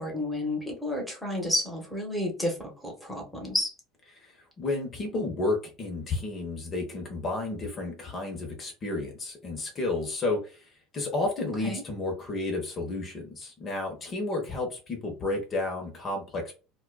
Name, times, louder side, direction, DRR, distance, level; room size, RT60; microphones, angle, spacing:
voice 1, 0.0-3.8 11.6-11.8, left 1 dB, 5° left, 0 dB, 1.4 m, -31 dB
voice 2, 4.2-16.5, left 2 dB, 40° left, 2 dB, 1.1 m, -32 dB
4.3 x 2.4 x 2.3 m, 0.33 s
supercardioid pair, 100°, 0 cm